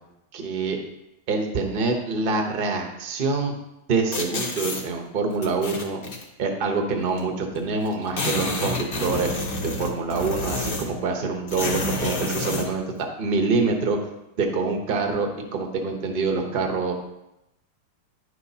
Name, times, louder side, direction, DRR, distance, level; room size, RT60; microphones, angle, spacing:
voice 1, 0.3-0.8 1.3-3.5 3.9-6.0 6.4-9.3 9.8-14.0 14.4-16.9, right 4 dB, 65° right, 3 dB, 0.5 m, -25 dB
sound 1, 4.1-4.8 5.4-6.2 7.2-7.3 7.5-7.6 7.9-11.0 11.5-12.7, left 2 dB, 45° left, 1.0 m, -28 dB
10.0 x 6.2 x 2.7 m, 0.90 s
omnidirectional pair, 2.2 m